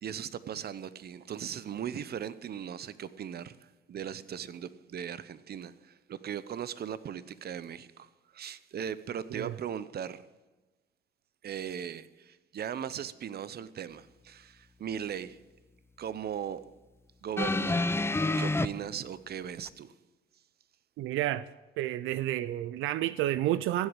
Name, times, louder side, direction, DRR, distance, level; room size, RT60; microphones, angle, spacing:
voice 1, 0.0-10.2 11.4-15.4 16.0-16.6 17.2-18.1 18.4-19.9, right 8 dB, 50° right, 0.8 m, -38 dB
sound 1, 17.4-18.7 19.7-19.8, left 2 dB, 10° left, 0.5 m, -27 dB
voice 2, 21.0-21.5 21.8-23.9, right 14 dB, 85° right, 0.5 m, -30 dB
16.0 x 8.2 x 8.8 m
cardioid pair, 90°, 20 cm